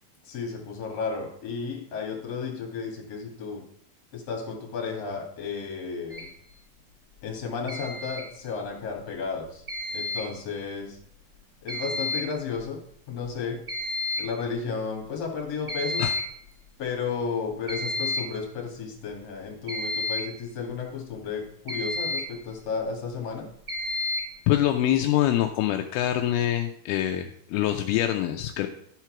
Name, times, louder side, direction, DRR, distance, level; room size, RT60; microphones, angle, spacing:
voice 1, 0.2-3.6 4.1-6.3 7.2-9.6 9.9-11.0 11.6-12.8 13.1-13.6 14.2-16.0 16.8-23.5, left 5 dB, 45° left, 0 dB, 3.0 m, -33 dB
sound 1, 6.1-6.3 7.7-8.3 9.7-10.3 11.7-12.3 12.6-12.7 13.2-13.3 13.7-14.3 15.7-16.3 17.7-18.4 19.7-20.4 21.7-22.4 23.7-24.4, left 2 dB, 20° right, 2.5 m, -30 dB
voice 2, 24.5-28.7, left 12 dB, 85° left, 5 dB, 2.5 m, -25 dB
12.0 x 4.5 x 5.9 m, 0.68 s
omnidirectional pair, 4.5 m